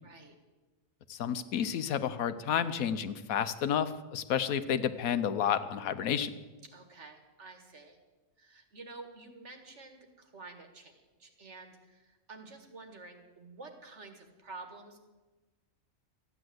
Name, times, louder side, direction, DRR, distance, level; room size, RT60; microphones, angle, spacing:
voice 1, 0.0-0.4 6.7-8.0 8.4-15.0, right 3 dB, 55° right, 5 dB, 1.9 m, -50 dB
voice 2, 1.1-6.3, left 8 dB, 85° left, 12 dB, 1.2 m, -31 dB
14.0 x 9.6 x 7.8 m, 1.2 s
omnidirectional pair, 1.5 m